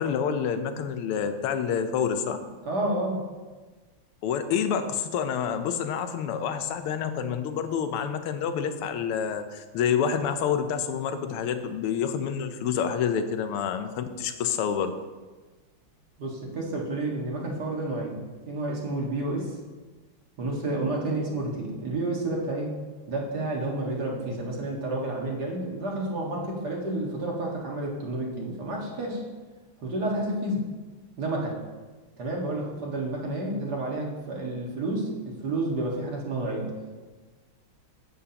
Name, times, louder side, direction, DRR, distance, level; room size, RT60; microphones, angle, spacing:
voice 1, 0.0-2.4 4.2-15.0, left 7 dB, 90° left, 9 dB, 1.6 m, -28 dB
voice 2, 2.7-3.2 16.2-19.6 20.4-22.7 23.1-29.2 29.8-30.7 31.2-31.6 32.2-36.7, right 2 dB, 50° right, -2 dB, 2.1 m, -30 dB
11.0 x 8.7 x 2.9 m, 1.3 s
omnidirectional pair, 2.4 m